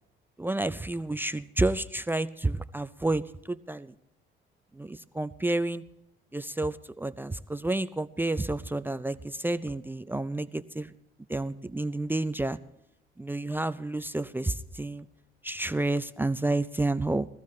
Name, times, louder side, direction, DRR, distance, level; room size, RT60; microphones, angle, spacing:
voice 1, 0.4-3.9 4.7-5.8 6.3-10.9 11.3-12.6 13.2-15.1 15.4-17.3, right 2 dB, 10° right, 12 dB, 0.4 m, -30 dB
22.0 x 14.5 x 3.2 m, 0.79 s
cardioid pair, 90°, 20 cm